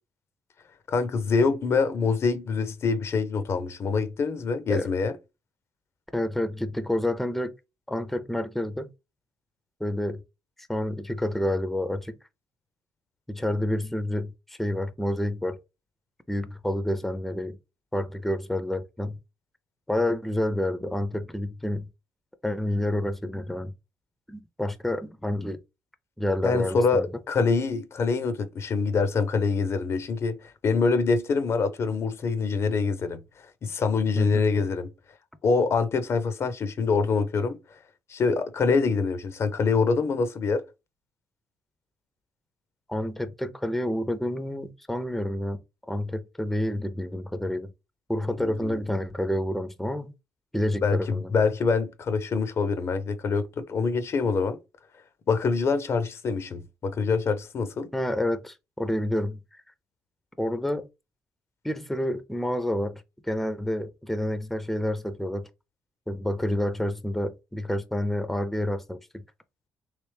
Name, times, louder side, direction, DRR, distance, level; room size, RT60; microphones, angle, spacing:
voice 1, 0.9-5.2 26.4-34.9 35.4-37.6 38.1-40.6 48.4-48.8 50.8-54.6 55.3-57.9, left 4 dB, 50° left, 0.5 m, -25 dB
voice 2, 6.1-7.5 7.9-8.9 9.8-10.2 10.7-12.1 13.3-15.6 16.3-17.6 17.9-19.2 19.9-21.9 22.4-23.7 24.3-25.6 26.2-27.1 34.2-34.4 42.9-45.6 45.9-47.7 48.1-50.1 50.5-51.3 57.9-59.4 60.4-60.9 61.6-62.9 63.2-65.5 66.1-69.2, left 1 dB, 5° left, 0.5 m, -29 dB
3.3 x 2.9 x 3.2 m
supercardioid pair, 70°, 6 cm